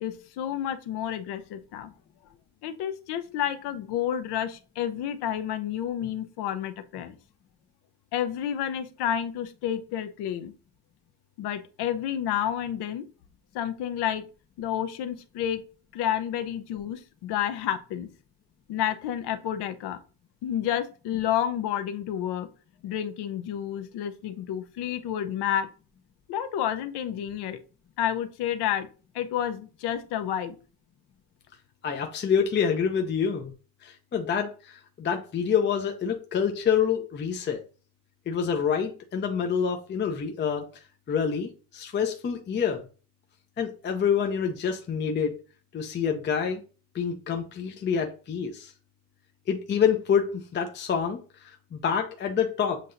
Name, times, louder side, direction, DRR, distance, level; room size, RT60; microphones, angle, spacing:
voice 1, 0.0-1.9 2.6-7.2 8.1-10.5 11.4-13.0 13.5-14.3 14.6-15.6 15.9-18.1 18.7-20.0 20.4-22.5 22.8-25.7 26.3-27.6 28.0-28.9 29.1-30.6, left 10 dB, 65° left, 9 dB, 0.7 m, -30 dB
voice 2, 31.8-33.5 33.8-37.6 38.3-40.6 41.1-42.8 43.6-45.3 45.7-46.6 46.9-48.7 49.5-52.8, left 7 dB, 25° left, 4 dB, 0.5 m, -27 dB
7.5 x 2.8 x 2.5 m, 0.36 s
cardioid pair, 110°, 43 cm